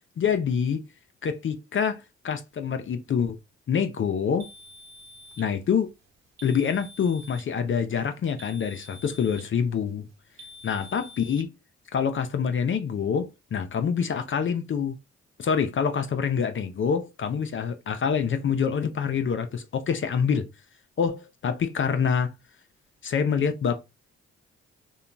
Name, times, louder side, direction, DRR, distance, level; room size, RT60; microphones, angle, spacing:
voice 1, 0.2-0.8 1.2-3.4 3.7-4.5 5.4-5.9 6.4-10.1 10.6-11.5 11.9-15.0 15.4-20.5 21.0-22.3 23.0-23.8, left 7 dB, 40° left, 0.4 m, -26 dB
sound 1, 4.4-5.5 6.4-7.5 8.4-9.5 10.4-11.4, left 1 dB, 60° right, 0.9 m, -47 dB
2.8 x 2.2 x 2.4 m
supercardioid pair, 45°, 30 cm